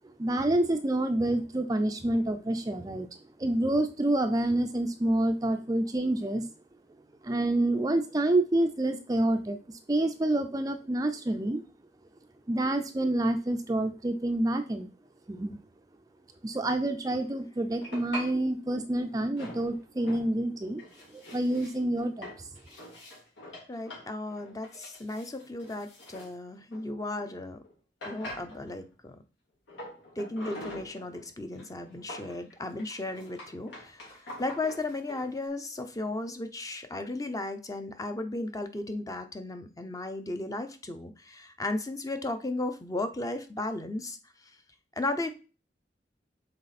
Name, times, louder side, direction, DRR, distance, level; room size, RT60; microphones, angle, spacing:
voice 1, 0.2-3.1 3.4-6.5 7.2-11.6 12.5-14.9 15.3-15.6 16.4-20.8 21.1-22.5, right 1 dB, 20° right, 6 dB, 0.4 m, -28 dB
sound 1, 17.8-18.3 19.4-20.3 20.6-27.3 27.6-27.7 28.0-28.9 29.7-31.3 31.6-35.3, left 1 dB, 85° left, 3.0 m, -44 dB
voice 2, 23.7-27.6 28.0-29.2 30.2-44.2 45.0-45.3, left 2 dB, 20° left, 7 dB, 0.6 m, -35 dB
6.6 x 4.2 x 4.1 m, 0.35 s
head